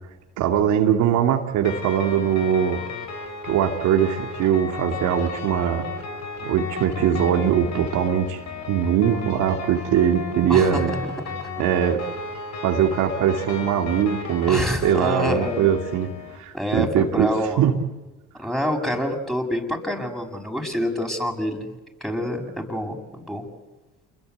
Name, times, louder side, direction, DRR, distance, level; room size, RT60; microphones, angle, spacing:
voice 1, 0.4-2.8 3.4-5.9 6.4-8.4 8.7-11.0 11.6-12.0 12.6-17.3 17.6-17.7, right 9 dB, 70° right, 2 dB, 2.4 m, -21 dB
sound 1, 1.6-16.4, left 4 dB, 60° left, 5.7 m, -34 dB
voice 2, 10.5-11.0 11.4-11.5 14.5-15.6 16.5-17.6 18.4-21.7 22.0-23.4, left 1 dB, ahead, 2 dB, 7.0 m, -27 dB
28.5 x 21.5 x 8.2 m, 1.1 s
supercardioid pair, 65°, 31 cm